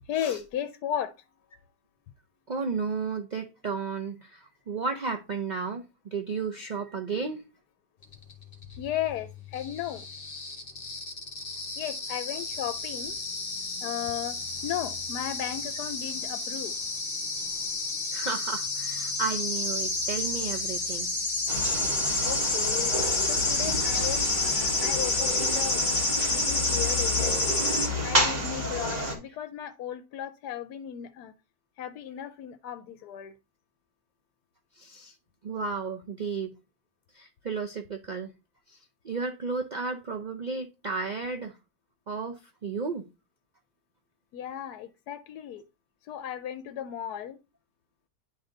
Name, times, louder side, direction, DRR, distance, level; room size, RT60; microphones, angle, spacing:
voice 1, 0.1-1.1 8.8-10.1 11.8-13.1 13.8-16.7 22.2-22.9 23.3-27.7 28.0-31.3 31.8-33.3 44.3-45.6 46.1-47.4, left 10 dB, 75° left, 1.2 m, -35 dB
voice 2, 2.5-7.4 18.1-21.1 34.8-35.1 35.4-36.5 37.1-38.3 38.7-38.8 39.0-41.6 42.1-43.1, right 4 dB, 60° right, 0.4 m, -33 dB
sound 1, 8.1-27.9, left 3 dB, 35° left, 1.6 m, -30 dB
sound 2, 21.5-29.1, equal, 25° right, 1.9 m, -30 dB
10.0 x 3.7 x 3.9 m
omnidirectional pair, 1.7 m